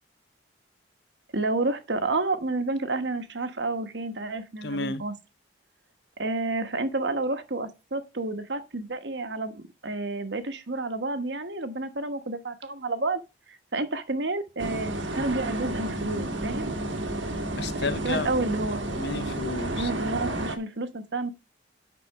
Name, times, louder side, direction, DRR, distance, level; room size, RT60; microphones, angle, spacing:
voice 1, 1.3-5.1 6.2-13.2 13.5-16.7 18.0-18.8 19.7-21.3, right 2 dB, 65° right, 1.2 m, -30 dB
voice 2, 4.6-5.0 17.6-18.3 19.0-19.9, left 3 dB, 60° left, 0.8 m, -31 dB
sound 1, 14.6-20.6, right 1 dB, 90° right, 1.6 m, -31 dB
10.0 x 4.2 x 5.6 m
head